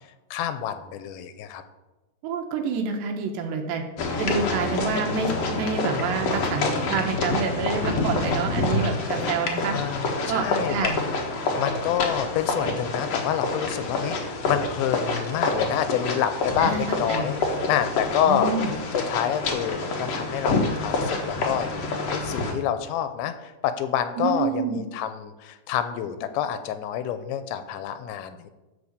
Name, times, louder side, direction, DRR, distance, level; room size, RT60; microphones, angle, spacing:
voice 1, 0.3-1.6 9.7-11.0 11.6-17.4 17.7-28.5, left 10 dB, 85° left, 10 dB, 3.1 m, -28 dB
voice 2, 2.2-3.8 4.2-9.8 10.3-11.0 16.6-16.8 17.1-17.3 18.3-18.7 24.2-24.8, right 5 dB, 75° right, 3 dB, 3.3 m, -28 dB
sound 1, 4.0-22.5, left 3 dB, 70° left, 1.5 m, -27 dB
14.5 x 4.9 x 6.6 m, 1.1 s
omnidirectional pair, 5.2 m